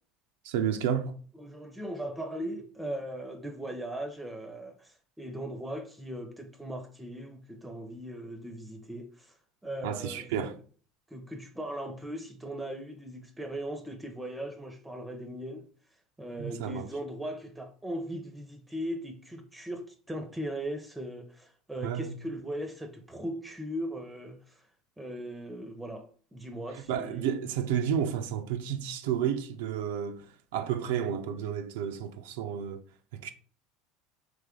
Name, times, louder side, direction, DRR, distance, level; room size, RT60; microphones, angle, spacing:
voice 1, 0.4-1.1 9.8-10.5 16.4-16.9 21.8-22.1 26.7-30.3 30.5-32.8 33.1-33.3, right 8 dB, 80° right, 0.4 m, -31 dB
voice 2, 1.4-9.3 9.6-10.5 11.1-15.7 16.2-24.7 25.0-27.3, right 1 dB, 10° right, 0.6 m, -38 dB
3.4 x 3.1 x 3.6 m
hypercardioid pair, 85°, 0 cm